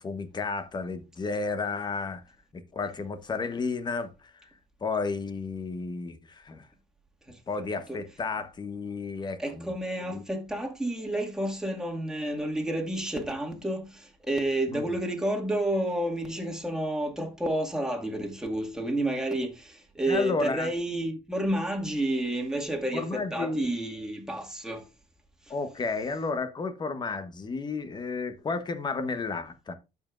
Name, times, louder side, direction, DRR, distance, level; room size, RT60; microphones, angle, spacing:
voice 1, 0.0-2.2 2.5-4.5 4.8-6.7 7.5-10.2 14.7-15.0 20.1-20.7 22.9-23.7 25.5-29.7, left 4 dB, 30° left, 1.3 m, -32 dB
voice 2, 9.4-24.8, right 1 dB, 5° right, 2.2 m, -30 dB
12.5 x 5.4 x 2.6 m
supercardioid pair, 85°, 14 cm